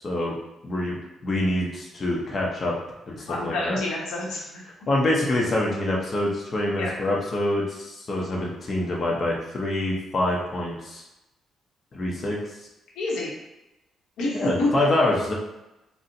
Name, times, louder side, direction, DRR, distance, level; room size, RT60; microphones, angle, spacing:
voice 1, 0.0-0.3 0.6-1.0 1.2-2.7 3.1-3.8 4.9-11.0 11.9-12.4 14.3-15.3, left 1 dB, 40° left, -3 dB, 0.6 m, -25 dB
voice 2, 3.3-4.6 6.8-7.0 13.0-13.3 14.2-14.9, left 2 dB, 85° left, -4 dB, 0.9 m, -28 dB
4.0 x 2.0 x 2.6 m, 0.94 s
cardioid pair, 90°, 0 cm